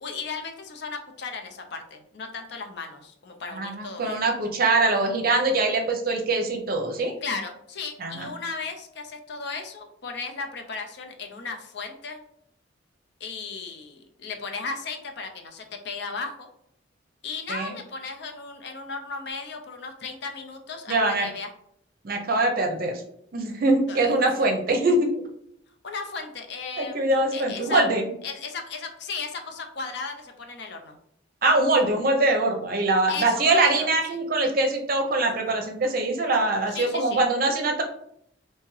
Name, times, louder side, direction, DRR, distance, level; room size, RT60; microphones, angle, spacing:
voice 1, 0.0-4.2 7.2-12.2 13.2-16.5 17.2-21.5 23.9-24.4 25.8-27.9 28.2-31.0 33.1-33.9 36.7-37.2, left 4 dB, 60° left, 4 dB, 0.5 m, -35 dB
voice 2, 3.5-7.1 8.0-8.3 17.5-17.7 20.9-21.3 22.0-23.0 23.3-25.1 26.8-28.1 31.4-37.8, right 2 dB, 50° right, 3 dB, 0.6 m, -23 dB
3.5 x 2.8 x 3.1 m, 0.72 s
head